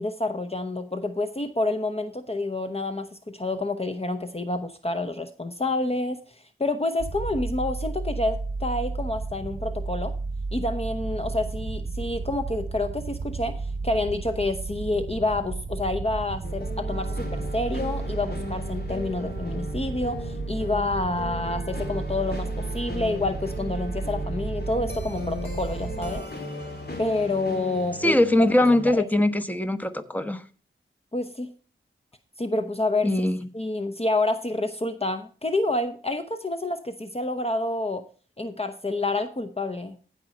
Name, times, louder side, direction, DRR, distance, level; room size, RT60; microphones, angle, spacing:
voice 1, 0.0-10.1 10.5-26.3 27.0-28.2 29.0-29.1 31.1-31.5 32.4-33.1 33.5-38.0 38.4-40.0, left 2 dB, 30° left, 0.9 m, -28 dB
sound 1, 7.0-26.2, right 3 dB, 40° right, 0.7 m, -33 dB
sound 2, 16.4-28.9, left 2 dB, 50° left, 2.6 m, -37 dB
voice 2, 28.0-30.4 33.0-33.4, left 1 dB, 10° left, 1.2 m, -21 dB
15.5 x 5.3 x 4.3 m
cardioid pair, 45°, 21 cm